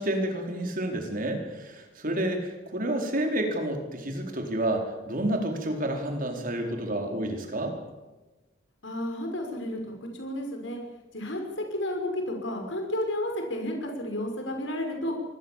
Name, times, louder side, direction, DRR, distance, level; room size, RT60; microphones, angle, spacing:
voice 1, 0.0-7.7, right 1 dB, 45° right, 3 dB, 4.6 m, -29 dB
voice 2, 8.8-9.9 10.2-10.8 11.1-15.1, left 1 dB, 80° left, 3 dB, 6.1 m, -32 dB
25.0 x 21.5 x 7.6 m, 1.1 s
head